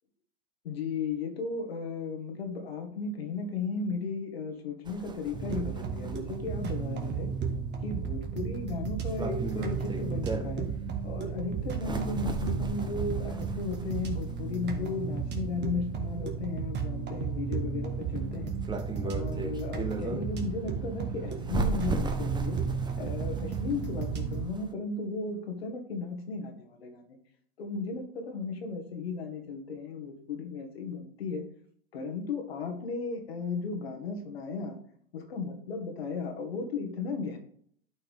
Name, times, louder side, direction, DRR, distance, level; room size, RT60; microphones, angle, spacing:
voice 1, 0.6-7.3 7.8-10.7 11.0-18.5 19.0-22.6 23.0-27.0 27.6-31.4 31.9-34.8 35.1-37.4, left 4 dB, 85° left, 4 dB, 1.7 m, -35 dB
sound 1, 4.9-24.7, right 3 dB, 15° right, 1.0 m, -38 dB
sound 2, 5.3-24.5, right 6 dB, 35° right, 1.7 m, -34 dB
12.0 x 4.5 x 3.5 m, 0.62 s
hypercardioid pair, 90°, 30 cm